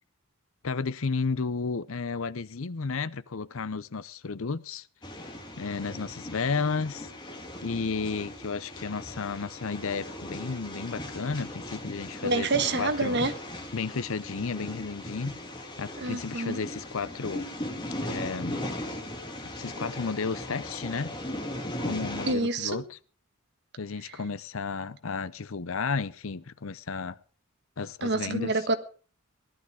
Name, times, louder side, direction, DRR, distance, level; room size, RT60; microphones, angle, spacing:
voice 1, 0.6-4.9 5.6-7.1 7.6-12.5 12.8-13.2 13.7-15.4 15.8-17.4 18.0-18.6 19.6-21.1 21.8-23.0 23.8-27.2 27.8-28.5, left 4 dB, 65° left, 0.7 m, -32 dB
sound 1, 5.0-22.3, left 1 dB, 20° left, 2.5 m, -38 dB
voice 2, 12.2-13.3 16.0-16.6 22.3-22.8 28.0-28.8, right 3 dB, 50° right, 1.5 m, -27 dB
18.0 x 12.0 x 4.8 m
head